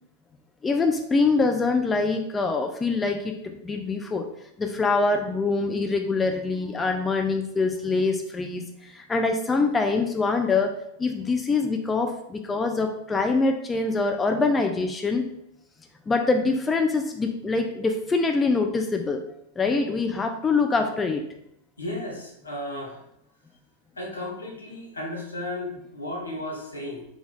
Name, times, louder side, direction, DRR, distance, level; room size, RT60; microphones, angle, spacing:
voice 1, 0.6-4.3 4.6-10.7 11.0-15.3 16.1-19.2 19.6-21.2, left 3 dB, 15° left, 4 dB, 0.3 m, -24 dB
voice 2, 21.8-23.0 24.0-27.0, left 1 dB, 75° left, 0 dB, 1.0 m, -34 dB
3.8 x 2.3 x 3.8 m, 0.77 s
figure-of-eight pair, 90°, 0 cm